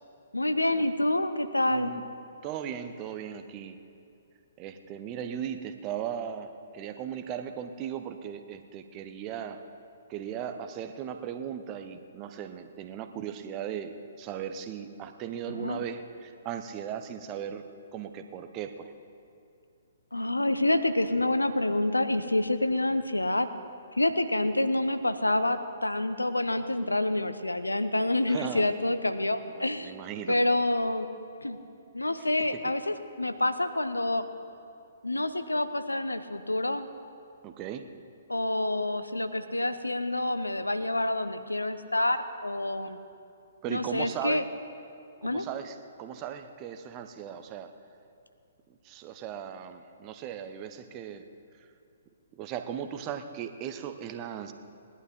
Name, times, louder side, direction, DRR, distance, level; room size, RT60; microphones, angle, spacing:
voice 1, 0.3-1.9 15.5-15.8 20.1-23.5 24.0-29.9 30.3-31.1 31.4-31.6 31.9-34.2 35.0-36.9 38.3-43.0 43.7-44.4 45.2-45.5, left 1 dB, 80° left, 10 dB, 0.8 m, -27 dB
voice 2, 1.7-2.0 2.4-3.8 4.6-9.6 10.1-17.6 17.9-18.9 28.3-28.7 29.5-30.4 32.5-32.6 37.4-37.9 43.6-44.4 45.2-47.7 48.8-51.3 52.4-54.5, right 9 dB, 25° right, 8 dB, 0.8 m, -37 dB
19.5 x 11.5 x 4.3 m, 2.5 s
figure-of-eight pair, 125°, 0 cm